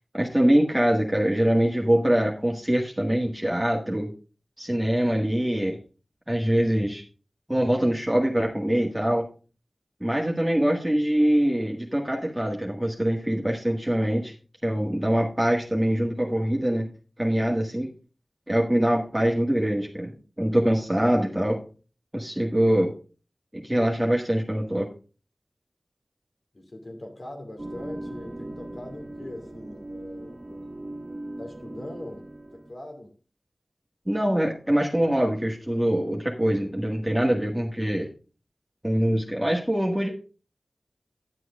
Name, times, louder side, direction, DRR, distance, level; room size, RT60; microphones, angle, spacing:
voice 1, 0.1-4.1 4.6-5.8 6.3-7.0 7.5-9.3 10.0-14.3 14.6-16.9 17.2-17.9 18.5-21.6 22.1-22.9 23.5-24.9 34.1-38.1 38.8-40.1, right 1 dB, 10° right, -2 dB, 1.7 m, -24 dB
voice 2, 26.5-30.6 31.4-33.1, left 1 dB, 60° left, 3 dB, 2.6 m, -41 dB
sound 1, 27.6-32.7, right 1 dB, 35° right, 1.5 m, -39 dB
10.0 x 7.7 x 3.6 m, 0.35 s
wide cardioid pair, 45°, 0 cm